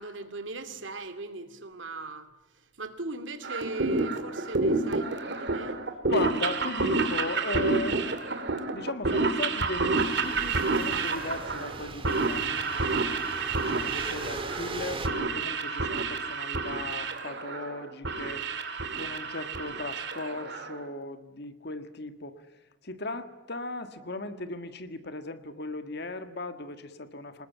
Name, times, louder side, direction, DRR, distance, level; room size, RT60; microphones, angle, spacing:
voice 1, 0.0-5.8, right 2 dB, 85° right, 9 dB, 2.4 m, -39 dB
sound 1, 3.4-20.8, right 3 dB, 65° right, 2.4 m, -29 dB
voice 2, 6.1-8.0 8.7-18.4 18.9-22.4 22.8-27.5, left 2 dB, 60° left, 9 dB, 1.8 m, -37 dB
sound 2, 9.9-15.1, right 3 dB, 30° right, 2.0 m, -39 dB
25.5 x 20.0 x 9.2 m, 1.0 s
head